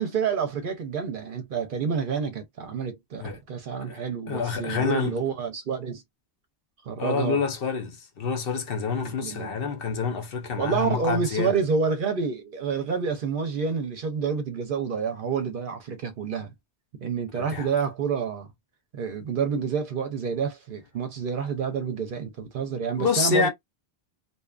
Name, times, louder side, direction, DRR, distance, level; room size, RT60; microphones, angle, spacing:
voice 1, 0.0-6.0 6.8-7.4 9.0-9.5 10.6-16.5 17.0-18.5 18.9-23.5, right 6 dB, 60° right, 0.7 m, -28 dB
voice 2, 3.9-5.2 7.0-11.6 17.3-17.7 23.0-23.5, left 5 dB, 60° left, 0.9 m, -27 dB
2.6 x 2.3 x 2.3 m
omnidirectional pair, 1.1 m